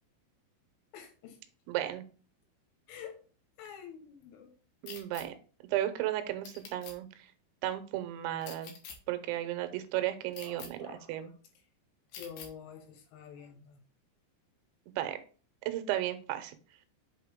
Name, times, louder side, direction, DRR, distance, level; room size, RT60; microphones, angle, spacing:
voice 1, 0.9-1.4 2.9-3.2 3.6-4.6 10.4-11.3 12.1-13.8, left 8 dB, 85° left, 4 dB, 3.9 m, -48 dB
voice 2, 1.7-2.0 4.8-5.3 5.7-7.3 7.6-8.7 9.1-11.3 15.0-15.2 15.7-16.6, right 13 dB, 80° right, 9 dB, 3.0 m, -34 dB
sound 1, 4.9-5.3 6.4-7.0 8.4-9.0 10.3-10.7 12.1-12.5, left 6 dB, 70° left, 2.4 m, -46 dB
8.0 x 4.3 x 3.6 m, 0.38 s
omnidirectional pair, 5.5 m